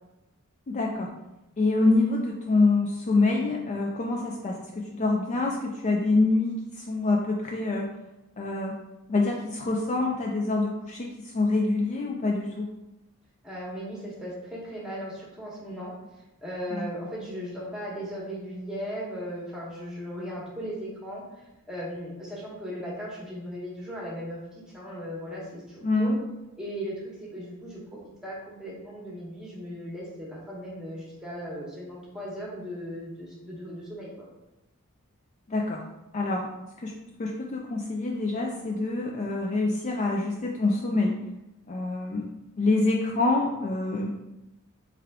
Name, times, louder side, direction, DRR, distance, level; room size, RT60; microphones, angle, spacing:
voice 1, 0.7-1.1 1.6-7.9 8.4-8.8 9.1-12.7 16.7-16.9 25.8-26.2 35.5-35.8 36.1-36.5 36.8-41.2 41.7-42.3 42.6-44.1, left 2 dB, 30° left, -1 dB, 0.3 m, -26 dB
voice 2, 13.4-15.9 16.4-21.2 21.7-24.4 24.7-26.1 26.6-34.3, equal, 5° right, -5 dB, 1.1 m, -37 dB
3.4 x 3.3 x 3.5 m, 0.97 s
head